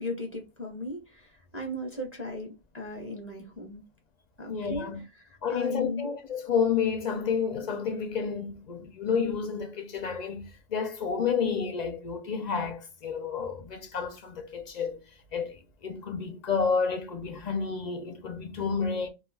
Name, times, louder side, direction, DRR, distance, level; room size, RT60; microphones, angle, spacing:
voice 1, 0.0-3.8 4.4-4.9 5.2-6.1, left 2 dB, 15° right, 0.5 m, -36 dB
voice 2, 4.5-5.0 5.4-15.0 15.3-19.1, left 6 dB, 55° left, 0.5 m, -30 dB
2.4 x 2.2 x 3.3 m
omnidirectional pair, 1.1 m